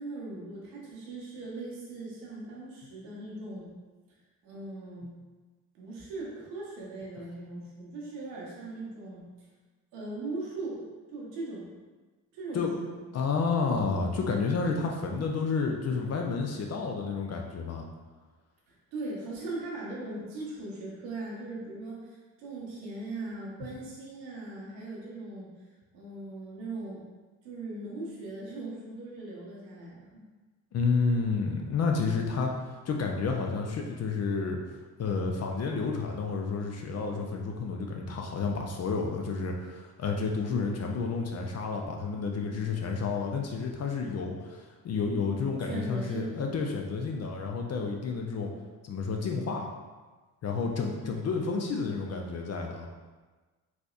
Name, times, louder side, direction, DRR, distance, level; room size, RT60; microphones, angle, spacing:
voice 1, 0.0-3.7 4.4-5.1 5.7-9.5 9.9-10.8 11.1-11.7 12.3-13.0 18.7-25.5 25.9-27.0 27.4-30.2 45.6-46.5 50.9-51.1, right 2 dB, 75° right, -5 dB, 1.0 m, -39 dB
voice 2, 13.1-17.9 30.7-32.5 32.8-34.6 35.0-48.5 48.8-49.7 50.4-52.9, left 4 dB, 35° left, 1 dB, 0.5 m, -30 dB
4.0 x 2.8 x 2.4 m, 1.3 s
figure-of-eight pair, 45°, 50 cm